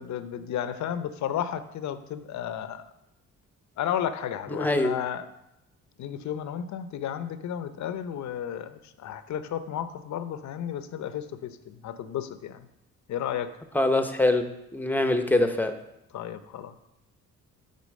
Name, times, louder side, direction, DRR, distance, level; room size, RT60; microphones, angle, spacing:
voice 1, 0.0-2.9 3.8-5.3 6.0-12.7 13.1-13.6 16.1-16.8, left 9 dB, 70° left, 11 dB, 0.7 m, -33 dB
voice 2, 4.5-4.9 13.7-14.4 14.7-15.7, left 2 dB, 5° left, 7 dB, 0.8 m, -23 dB
8.4 x 4.0 x 6.4 m, 0.85 s
cardioid pair, 90°, 30 cm